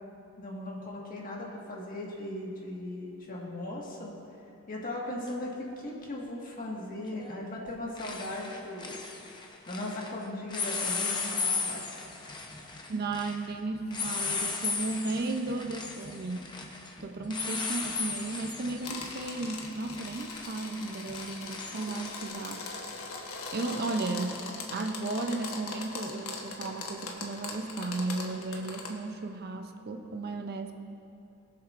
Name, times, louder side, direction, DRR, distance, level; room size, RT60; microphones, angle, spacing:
voice 1, 0.4-4.1 4.7-9.0 9.7-11.8, left 1 dB, 40° left, -2 dB, 1.6 m, -38 dB
sound 1, 5.3-5.4 7.1-7.4 7.7-10.1 10.5-22.3, left 4 dB, 20° left, 0.8 m, -36 dB
voice 2, 12.9-16.6 17.0-22.6 23.5-30.7, right 3 dB, 45° right, 6 dB, 0.5 m, -34 dB
sound 2, 18.8-28.9, left 3 dB, 85° left, 1.2 m, -40 dB
22.0 x 7.3 x 2.5 m, 2.7 s
head